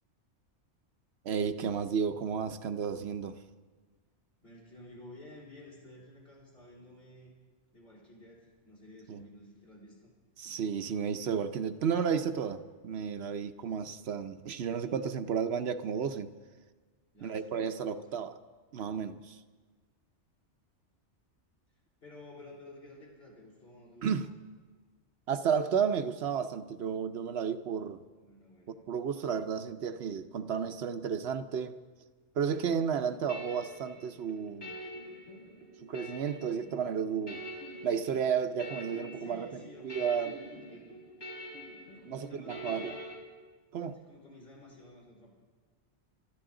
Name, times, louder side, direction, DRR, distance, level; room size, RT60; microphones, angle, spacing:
voice 1, 1.2-3.4 9.1-9.2 10.4-16.3 17.2-18.3 18.7-19.4 24.0-24.3 25.3-28.0 28.9-31.8 32.4-34.7 35.8-37.4 37.8-39.5 39.8-40.3 42.0-43.0 43.7-44.0, right 7 dB, 65° right, 9 dB, 0.9 m, -32 dB
voice 2, 4.4-7.3 7.7-10.1 10.4-10.5 17.1-18.2 21.7-24.3 28.1-28.8 38.5-38.6 39.1-40.9 41.9-43.1 43.9-45.3, left 1 dB, 55° left, -4 dB, 4.3 m, -53 dB
sound 1, 32.7-43.2, equal, 80° left, 3.9 m, -45 dB
23.5 x 13.5 x 3.8 m, 1.4 s
omnidirectional pair, 1.2 m